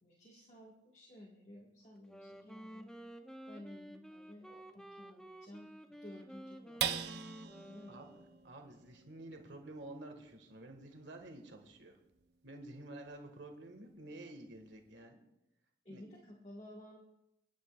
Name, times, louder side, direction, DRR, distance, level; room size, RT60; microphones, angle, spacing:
voice 1, 0.0-2.9 3.5-6.9 7.2-8.0 15.9-17.0, left 1 dB, 35° left, -3 dB, 1.7 m, -54 dB
Wind instrument woodwind instrument, 2.0-8.5, right 1 dB, 5° left, 0.7 m, -52 dB
sound 1, 6.8-13.5 14.0-14.1 14.5-15.0, right 8 dB, 65° right, 0.7 m, -44 dB
voice 2, 7.9-8.2 8.4-12.0 12.4-15.2 15.9-16.0, right 1 dB, 80° right, 3 dB, 1.8 m, -50 dB
29.5 x 9.9 x 2.5 m, 0.83 s
head